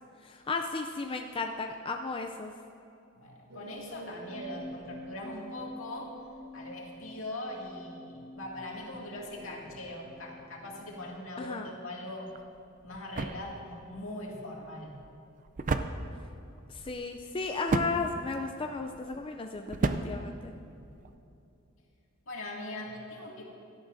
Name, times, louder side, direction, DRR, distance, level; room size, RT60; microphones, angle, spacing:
voice 1, 0.2-2.5 11.4-11.7 16.7-20.5, left 3 dB, 25° left, 4 dB, 0.4 m, -34 dB
voice 2, 3.1-6.1 6.5-12.3 12.8-15.0 22.3-23.4, left 1 dB, 75° left, -2 dB, 2.2 m, -41 dB
sound 1, 3.5-11.2, right 1 dB, 55° right, 1.0 m, -47 dB
sound 2, 12.3-21.1, right 3 dB, 40° right, 0.5 m, -36 dB
17.0 x 12.0 x 2.6 m, 2.7 s
head